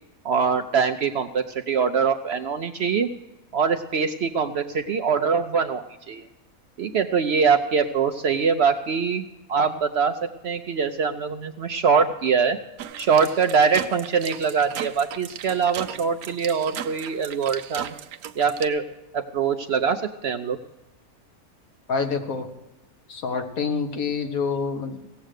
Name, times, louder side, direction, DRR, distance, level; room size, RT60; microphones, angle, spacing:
voice 1, 0.2-3.1 3.5-6.2 6.8-12.6 13.0-17.9 18.4-18.9 19.1-20.6, right 6 dB, 60° right, 8 dB, 0.7 m, -23 dB
sound 1, 12.8-18.7, right 10 dB, 85° right, 1.1 m, -37 dB
voice 2, 21.9-22.5 23.1-25.0, left 5 dB, 70° left, 5 dB, 1.7 m, -27 dB
17.0 x 7.7 x 6.4 m, 0.99 s
omnidirectional pair, 1.5 m